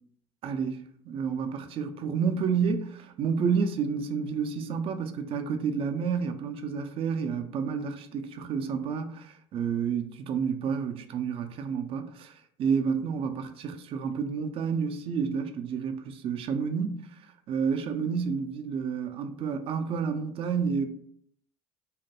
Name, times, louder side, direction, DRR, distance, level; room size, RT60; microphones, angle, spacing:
voice 1, 0.4-17.0 17.5-20.9, right 6 dB, 40° right, 0.4 m, -30 dB
2.3 x 2.2 x 2.8 m
hypercardioid pair, 75°, 14 cm